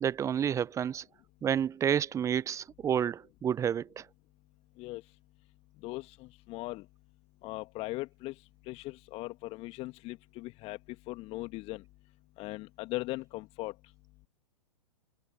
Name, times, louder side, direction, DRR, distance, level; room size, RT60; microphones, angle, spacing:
voice 1, 0.0-1.0 1.4-4.0, right 8 dB, 15° right, 1.0 m, -30 dB
voice 2, 5.8-6.9 7.4-8.3 8.7-10.8 11.1-11.8 12.4-13.7, left 20 dB, 30° left, 2.7 m, -39 dB
figure-of-eight pair, 110°, 20 cm